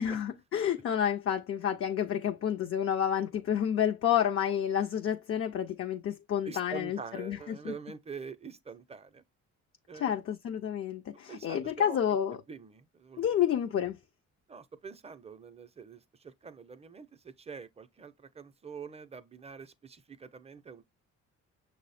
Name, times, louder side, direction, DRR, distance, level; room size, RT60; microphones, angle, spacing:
voice 1, 0.0-7.7 9.9-12.4 13.2-14.0, left 9 dB, 50° left, 0.4 m, -30 dB
voice 2, 6.4-9.2 9.9-10.2 11.3-12.0 12.5-13.2 14.5-20.8, right 5 dB, 20° right, 0.5 m, -45 dB
6.1 x 2.1 x 4.1 m
cardioid pair, 90°, 30 cm